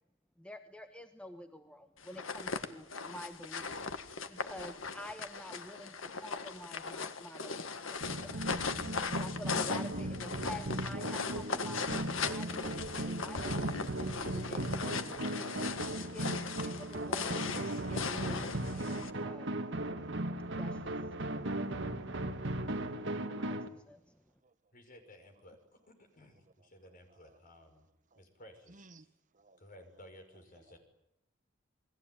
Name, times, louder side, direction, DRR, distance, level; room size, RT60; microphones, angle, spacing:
voice 1, 0.4-3.7 4.3-8.5 9.1-15.4 15.8-19.5 20.5-21.0 23.3-24.2, left 1 dB, 5° left, 1.2 m, -49 dB
sound 1, 2.0-19.1, left 4 dB, 75° left, 1.8 m, -38 dB
sound 2, 8.0-23.7, right 1 dB, 65° right, 1.9 m, -37 dB
voice 2, 24.7-27.8 28.2-28.9 29.6-30.8, left 1 dB, 45° left, 5.9 m, -56 dB
voice 3, 26.6-27.4 28.1-28.2 28.7-29.0 29.3-30.4, right 3 dB, 40° right, 1.3 m, -63 dB
29.0 x 21.0 x 9.3 m
head